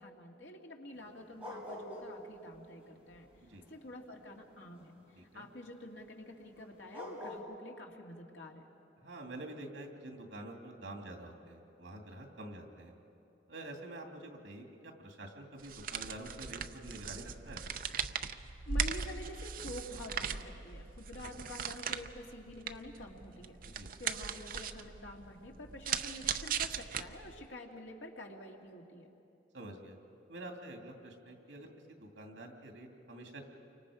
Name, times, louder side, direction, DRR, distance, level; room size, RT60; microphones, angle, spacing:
voice 1, 0.0-3.3 3.7-8.6 18.7-23.6 24.0-29.1, left 1 dB, 80° left, 1 dB, 2.2 m, -48 dB
sound 1, 0.9-2.3 2.5-5.0 6.6-6.7 6.9-7.4, left 1 dB, 5° right, 3.8 m, -45 dB
voice 2, 9.0-12.9 13.5-17.6 23.6-23.9 29.5-30.0 30.3-33.4, right 1 dB, 80° right, 3 dB, 2.6 m, -47 dB
sound 2, 15.6-27.5, right 6 dB, 45° right, 0.6 m, -39 dB
29.5 x 24.5 x 5.1 m, 2.8 s
head